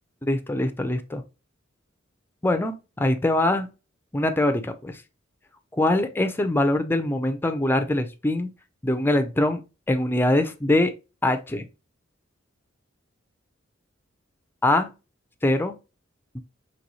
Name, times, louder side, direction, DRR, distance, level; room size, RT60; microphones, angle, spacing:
voice 1, 0.2-1.2 2.4-3.7 4.1-5.0 5.7-8.5 8.8-9.6 9.9-10.9 11.2-11.7 14.6-14.9 15.4-15.8 16.3-16.4, left 1 dB, 10° left, 0.4 m, -23 dB
4.0 x 3.1 x 2.9 m
head